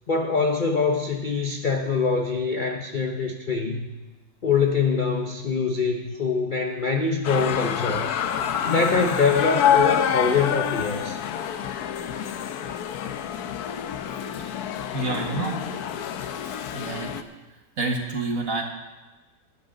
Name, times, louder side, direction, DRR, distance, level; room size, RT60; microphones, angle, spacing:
voice 1, 0.1-3.9 4.4-8.2 8.6-11.2, left 4 dB, 50° left, 3 dB, 0.6 m, -24 dB
sound 1, 7.2-17.2, left 9 dB, 70° left, 1.1 m, -27 dB
voice 2, 14.9-15.6 16.7-17.1 17.8-18.6, right 3 dB, 50° right, 1 dB, 1.9 m, -28 dB
20.5 x 9.2 x 3.8 m, 1.2 s
omnidirectional pair, 1.9 m